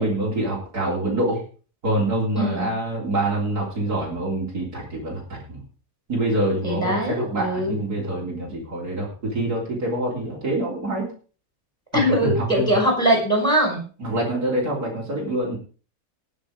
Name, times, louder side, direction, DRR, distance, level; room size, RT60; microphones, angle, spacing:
voice 1, 0.0-1.4 1.8-5.6 6.1-11.1 11.9-12.7 14.0-15.6, right 1 dB, 80° right, -3 dB, 4.1 m, -26 dB
voice 2, 2.3-2.7 6.6-7.8 11.9-13.8, equal, 5° left, 0 dB, 6.4 m, -21 dB
19.0 x 7.0 x 5.0 m, 0.38 s
omnidirectional pair, 1.6 m